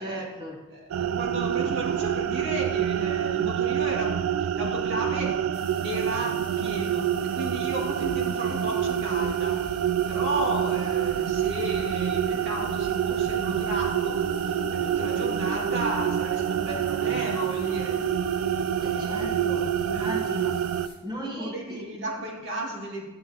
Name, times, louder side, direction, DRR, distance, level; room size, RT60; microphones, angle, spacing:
voice 1, 0.0-0.6 18.8-20.6 21.0-22.3, equal, 20° right, -2 dB, 1.1 m, -37 dB
voice 2, 0.7-5.5 5.8-18.0 18.8-19.3 19.9-20.1 21.3-23.1, right 1 dB, 60° right, -2 dB, 2.2 m, -34 dB
sound 1, 0.9-20.9, right 9 dB, 90° right, 0.3 m, -27 dB
sound 2, 5.5-20.9, left 4 dB, 25° left, 1.8 m, -50 dB
11.0 x 7.7 x 2.9 m, 1.2 s
head